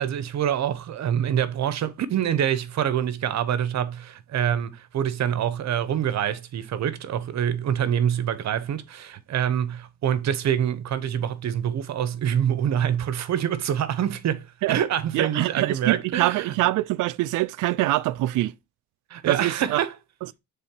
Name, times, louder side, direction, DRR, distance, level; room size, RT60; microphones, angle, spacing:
voice 1, 0.0-16.6 19.1-20.0, right 9 dB, 65° right, 0.9 m, -26 dB
voice 2, 15.1-18.5 19.3-19.8, right 17 dB, 90° right, 0.5 m, -24 dB
7.0 x 3.8 x 4.5 m
cardioid pair, 90°, 30 cm